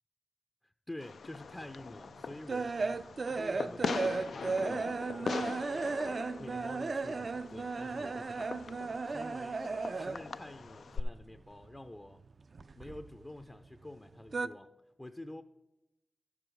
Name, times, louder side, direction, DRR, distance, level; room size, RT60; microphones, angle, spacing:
voice 1, 0.6-5.9 6.4-8.6 9.0-9.6 9.9-12.2 12.7-14.7 15.0-15.4, left 1 dB, 20° left, 0.5 m, -48 dB
Fireworks, 1.0-11.0, left 5 dB, 85° left, 0.3 m, -41 dB
sound 1, 1.8-10.4 10.7-11.9 12.1-13.5 13.8-14.5, right 4 dB, 60° right, 0.3 m, -35 dB
13.0 x 4.8 x 6.2 m
cardioid pair, 70°, 0 cm